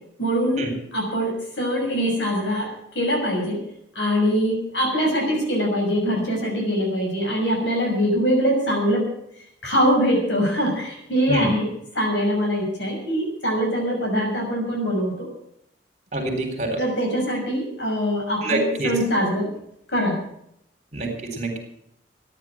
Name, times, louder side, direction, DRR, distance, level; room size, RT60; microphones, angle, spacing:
voice 1, 0.2-3.6 3.9-9.1 9.6-15.3 16.8-19.5 19.9-20.3, equal, 75° left, 1 dB, 6.2 m, -23 dB
voice 2, 16.1-16.8 18.4-18.9 20.9-21.6, right 1 dB, 40° right, 3 dB, 3.9 m, -26 dB
14.0 x 10.0 x 7.4 m, 0.72 s
head